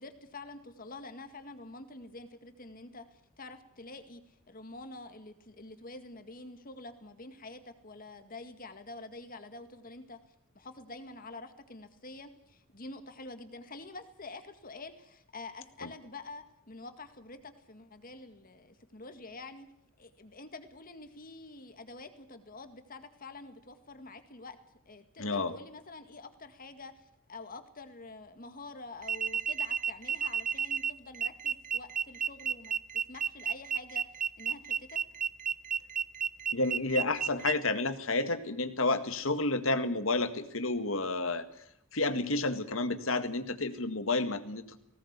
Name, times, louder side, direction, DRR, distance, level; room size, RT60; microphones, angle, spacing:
voice 1, 0.0-10.2 10.6-19.7 20.0-24.6 24.9-26.9 27.3-32.7 33.1-35.0, left 3 dB, 45° left, 8 dB, 2.0 m, -47 dB
voice 2, 25.2-25.6 36.5-41.5 41.9-44.8, left 2 dB, 70° left, 9 dB, 1.9 m, -30 dB
sound 1, 29.0-37.5, right 7 dB, 40° right, 0.8 m, -32 dB
20.0 x 18.0 x 8.3 m, 0.75 s
head